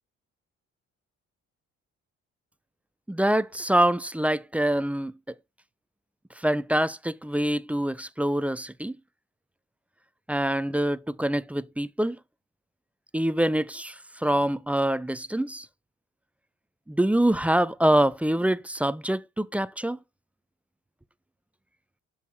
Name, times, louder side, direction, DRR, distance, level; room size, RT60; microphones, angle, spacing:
voice 1, 3.1-5.3 6.4-9.0 10.3-12.2 13.1-15.7 16.9-20.0, right 1 dB, 5° right, 0.4 m, -25 dB
7.5 x 5.5 x 3.5 m
cardioid pair, 90°, 30 cm